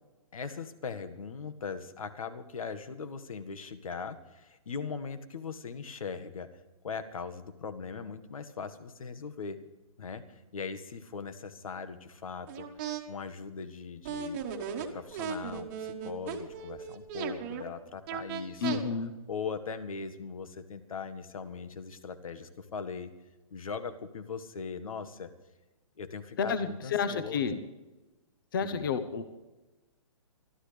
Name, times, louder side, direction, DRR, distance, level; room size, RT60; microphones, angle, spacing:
voice 1, 0.3-6.5 6.8-9.6 10.0-12.7 13.1-14.5 14.8-18.8 19.3-23.1 23.5-25.3 26.0-27.5 28.6-28.9, left 5 dB, 75° left, 10 dB, 1.7 m, -40 dB
sound 1, 12.5-13.0 14.0-17.6 18.1-18.8, right 7 dB, 20° right, 1.4 m, -36 dB
voice 2, 18.6-19.1 26.4-27.6 28.5-29.2, left 6 dB, 40° left, 11 dB, 1.0 m, -30 dB
24.5 x 13.0 x 3.4 m, 1.1 s
hypercardioid pair, 175°, 18 cm